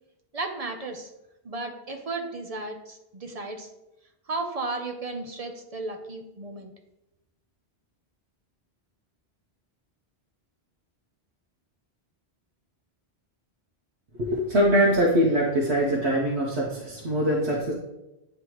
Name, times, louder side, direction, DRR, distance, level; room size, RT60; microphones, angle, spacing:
voice 1, 0.3-1.1 1.4-3.7 4.3-6.7, right 3 dB, 40° right, 3 dB, 0.6 m, -34 dB
voice 2, 14.2-17.7, equal, 80° right, -3 dB, 1.2 m, -23 dB
9.4 x 3.4 x 3.0 m, 0.90 s
omnidirectional pair, 1.1 m